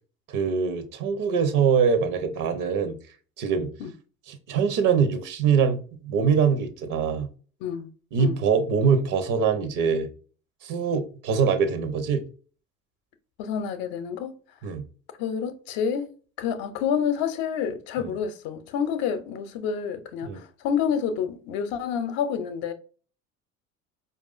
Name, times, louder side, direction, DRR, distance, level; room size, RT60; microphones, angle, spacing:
voice 1, 0.3-3.0 3.4-3.7 4.3-7.3 8.1-10.1 10.6-12.2 14.6-14.8 18.0-18.1 20.2-20.4, right 6 dB, 50° right, 0.9 m, -23 dB
voice 2, 13.4-14.3 15.2-16.1 16.4-22.7, left 7 dB, 60° left, 0.7 m, -28 dB
4.7 x 2.6 x 2.5 m
hypercardioid pair, 60°, 41 cm